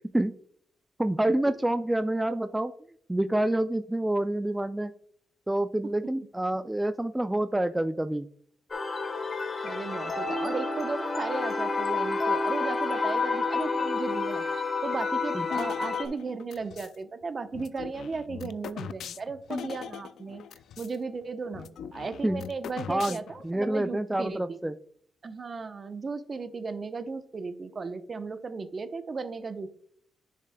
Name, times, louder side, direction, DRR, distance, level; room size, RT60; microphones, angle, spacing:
voice 1, 1.0-2.7 3.1-4.9 5.5-8.3 15.3-15.5 22.2-22.4 22.9-24.7, right 1 dB, 10° right, 9 dB, 0.3 m, -27 dB
sound 1, 8.7-16.1, left 4 dB, 40° left, 1.2 m, -29 dB
voice 2, 9.6-14.4 14.8-20.4 20.8-24.6 25.2-29.7, right 4 dB, 40° right, 9 dB, 0.8 m, -36 dB
sound 2, 15.5-17.0 17.5-21.0 21.2-21.3 21.5-23.5, left 8 dB, 80° left, 0.4 m, -40 dB
10.0 x 6.5 x 2.2 m, 0.63 s
cardioid pair, 90°, 0 cm